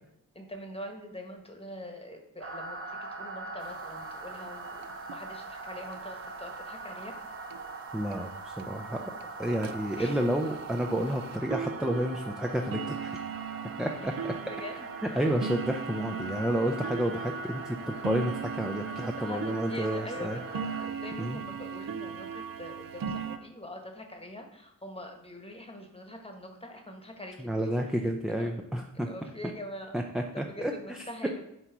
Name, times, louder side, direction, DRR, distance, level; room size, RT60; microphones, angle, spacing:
voice 1, 0.3-7.2 10.0-10.3 14.1-14.8 15.1-15.2 18.9-27.7 28.3-28.5 28.9-30.0 30.3-31.4, left 1 dB, 15° left, 3 dB, 1.2 m, -44 dB
sound 1, 2.4-20.9, right 3 dB, 40° right, 0.7 m, -42 dB
sound 2, 3.7-3.8 4.0-4.1 4.3-4.5 4.8-5.2 5.9-6.0 6.5-6.6 7.0-7.1 7.5-7.6 8.1-8.2 8.6-8.8 9.2-9.3 9.6-23.4, right 6 dB, 75° right, 0.5 m, -38 dB
voice 2, 7.9-9.0 9.4-13.1 13.8-14.3 15.2-20.4 21.2-21.4 27.4-29.1 29.9-31.1, right 1 dB, ahead, 3 dB, 0.4 m, -30 dB
7.9 x 3.0 x 4.6 m, 0.83 s
cardioid pair, 65°, 34 cm